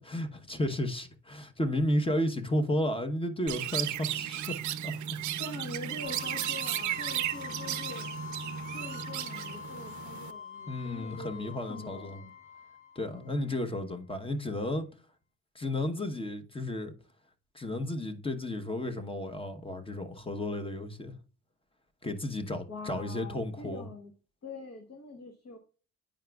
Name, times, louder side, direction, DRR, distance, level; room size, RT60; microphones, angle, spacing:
voice 1, 0.0-4.6 4.8-4.9 10.7-12.2 12.9-14.9 15.5-16.9 17.5-21.1 22.0-23.9, left 1 dB, 20° left, 0.9 m, -33 dB
Chirp tweet, 3.5-10.3, right 12 dB, 70° right, 0.6 m, -35 dB
voice 2, 5.4-8.1 8.7-12.3 13.0-13.6 22.7-24.1 24.4-25.6, left 3 dB, 55° left, 1.2 m, -44 dB
sound 1, 6.0-13.8, left 6 dB, 85° left, 1.8 m, -44 dB
9.1 x 5.0 x 2.3 m
cardioid pair, 90°, 30 cm